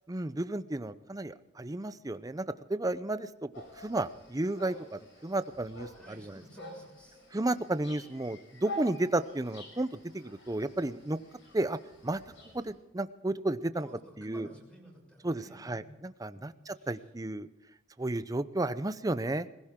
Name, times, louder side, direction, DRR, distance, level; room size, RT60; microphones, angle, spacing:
voice 1, 0.1-2.4 2.7-3.5 3.7-6.4 7.3-11.2 11.5-12.2 12.5-13.9 14.2-14.5 15.2-17.5 18.0-19.5, right 2 dB, 20° right, 13 dB, 0.6 m, -33 dB
sound 1, 3.5-12.7, left 1 dB, 65° left, 6.9 m, -48 dB
voice 2, 5.9-7.2 13.6-16.0 16.3-16.9, equal, 5° left, -1 dB, 6.6 m, -53 dB
20.5 x 16.5 x 3.7 m, 0.98 s
head